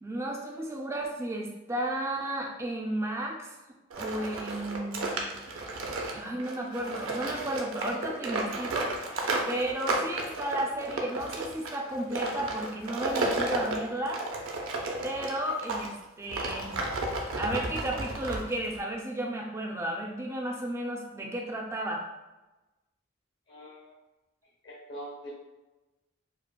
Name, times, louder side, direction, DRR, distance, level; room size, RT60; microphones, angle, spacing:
voice 1, 0.0-3.5 4.0-5.2 6.1-9.0 9.5-14.2 15.0-15.9 16.2-16.8 17.3-22.0, right 1 dB, 15° right, 0 dB, 0.3 m, -33 dB
sound 1, 3.9-15.9 16.3-18.8, right 2 dB, 80° right, 0.5 m, -33 dB
voice 2, 23.5-23.9 24.6-25.3, equal, 55° left, -6 dB, 0.8 m, -43 dB
4.8 x 2.1 x 2.2 m, 1.1 s
head